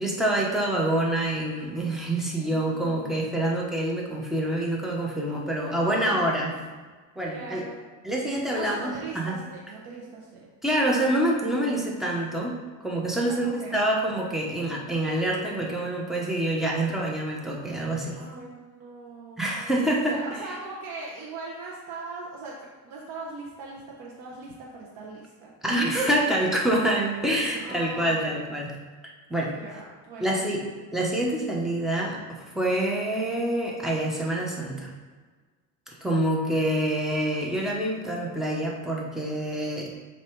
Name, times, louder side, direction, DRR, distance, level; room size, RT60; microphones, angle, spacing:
voice 1, 0.0-6.5 7.2-7.6 8.0-9.4 10.6-18.2 19.4-20.2 25.6-28.8 29.3-29.5 30.2-30.6 30.9-34.9 35.9-39.9, right 1 dB, ahead, -3 dB, 1.0 m, -26 dB
voice 2, 2.4-3.4 5.2-6.4 7.3-7.8 8.5-10.5 13.2-13.8 18.1-19.7 20.0-22.6 22.8-25.5 27.6-28.5 29.5-30.7, right 3 dB, 70° right, -3 dB, 1.2 m, -40 dB
6.9 x 2.9 x 4.6 m, 1.4 s
cardioid pair, 130°, 38 cm